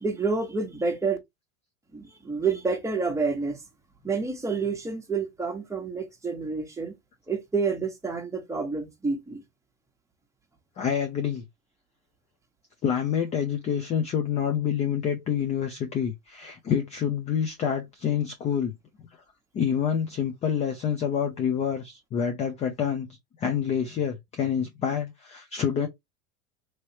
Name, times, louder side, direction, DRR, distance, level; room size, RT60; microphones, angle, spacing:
voice 1, 0.0-1.2 1.9-3.6 4.0-6.9 7.3-9.4, right 4 dB, 5° right, 1.1 m, -28 dB
voice 2, 10.8-11.4 12.8-18.7 19.5-23.1 23.4-25.9, left 8 dB, 15° left, 0.4 m, -27 dB
3.0 x 2.9 x 2.9 m
hypercardioid pair, 105°, 42 cm